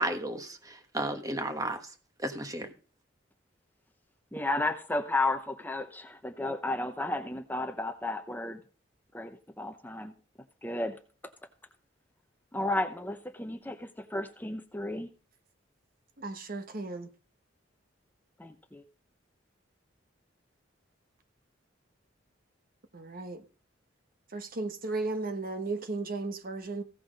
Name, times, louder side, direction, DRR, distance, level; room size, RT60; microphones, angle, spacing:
voice 1, 0.0-1.9 2.2-2.7, right 1 dB, 20° right, 1.3 m, -33 dB
voice 2, 4.3-8.6 9.1-10.1 10.6-11.0 12.5-15.1 18.4-18.8, left 2 dB, 10° left, 0.7 m, -33 dB
voice 3, 16.2-17.1 22.9-23.4 24.3-26.8, right 3 dB, 50° right, 1.2 m, -35 dB
16.0 x 6.1 x 5.1 m
head